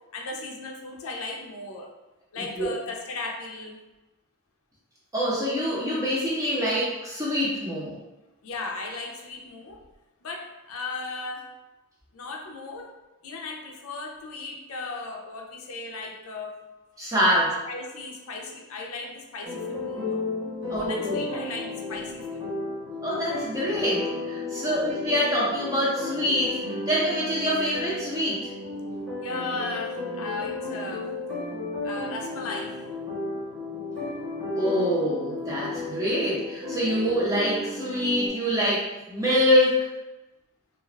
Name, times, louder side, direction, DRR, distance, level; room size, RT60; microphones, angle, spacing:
voice 1, 0.1-1.9 2.3-3.8 8.4-9.8 10.2-11.4 12.1-12.9 13.2-16.6 17.7-20.2 20.7-22.4 24.4-24.9 29.2-31.1 31.8-32.8, left 3 dB, 70° left, 0 dB, 0.5 m, -36 dB
voice 2, 2.3-2.7 5.1-8.0 17.0-17.6 20.7-21.2 23.0-26.6 26.9-28.5 34.6-39.9, equal, 15° right, -7 dB, 0.7 m, -25 dB
sound 1, 19.4-38.3, left 2 dB, 50° right, 1.2 m, -33 dB
2.4 x 2.3 x 3.2 m, 1.0 s
head